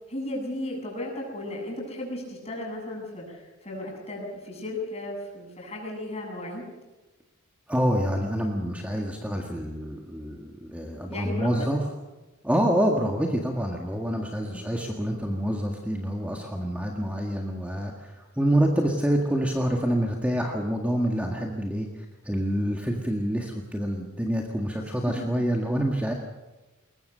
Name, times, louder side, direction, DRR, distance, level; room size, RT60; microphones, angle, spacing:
voice 1, 0.1-6.6 11.0-11.7 14.4-14.6 25.1-25.2, left 1 dB, 30° left, -1 dB, 7.8 m, -35 dB
voice 2, 7.7-11.8 12.4-26.1, equal, 5° right, 1 dB, 1.8 m, -27 dB
21.5 x 20.5 x 6.8 m, 1.1 s
head